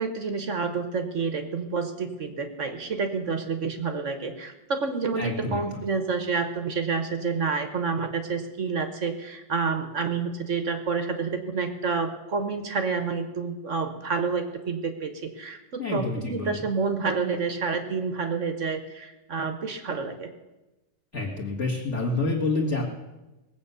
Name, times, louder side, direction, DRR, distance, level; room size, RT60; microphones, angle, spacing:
voice 1, 0.0-20.3, right 4 dB, 45° right, 8 dB, 1.2 m, -29 dB
voice 2, 5.2-5.8 15.8-16.6 21.1-22.8, left 2 dB, 35° left, -4 dB, 2.1 m, -28 dB
20.0 x 8.1 x 6.9 m, 1.0 s
omnidirectional pair, 2.2 m